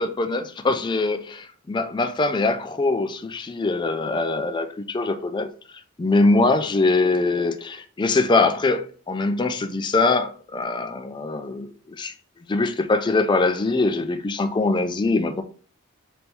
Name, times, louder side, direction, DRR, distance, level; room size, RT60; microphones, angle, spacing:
voice 1, 0.0-5.5 6.0-12.1 12.5-15.4, left 3 dB, 20° left, 0.3 m, -23 dB
4.0 x 3.7 x 2.8 m
head